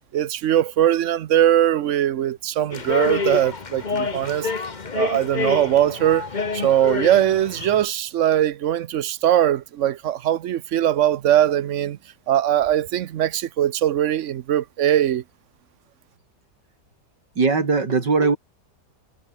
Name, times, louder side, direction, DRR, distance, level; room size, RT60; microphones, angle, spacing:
voice 1, 0.1-4.5 4.9-12.0 12.3-15.2, right 11 dB, 60° right, 0.8 m, -21 dB
sound 1, 2.7-7.8, left 4 dB, 30° left, 1.3 m, -28 dB
voice 2, 17.4-18.4, right 4 dB, 85° right, 4.1 m, -19 dB
omnidirectional pair, 1.8 m